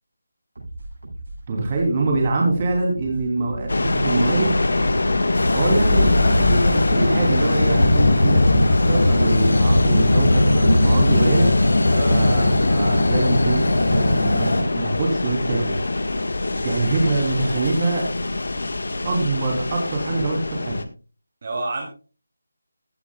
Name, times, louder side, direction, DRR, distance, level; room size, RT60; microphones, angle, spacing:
sound 1, 0.5-14.1, right 1 dB, 75° right, 7.4 m, -37 dB
voice 1, 1.5-4.6 5.5-11.5 12.1-15.8 16.6-18.1 19.0-20.8, right 2 dB, 25° right, 3.1 m, -24 dB
sound 2, 3.7-20.8, left 2 dB, 70° left, 1.6 m, -24 dB
sound 3, 5.3-14.6, left 1 dB, 90° left, 5.7 m, -19 dB
voice 2, 11.9-12.2 16.5-16.9 21.4-21.8, right 2 dB, 40° right, 3.0 m, -30 dB
16.0 x 10.0 x 2.3 m
figure-of-eight pair, 175°, 0 cm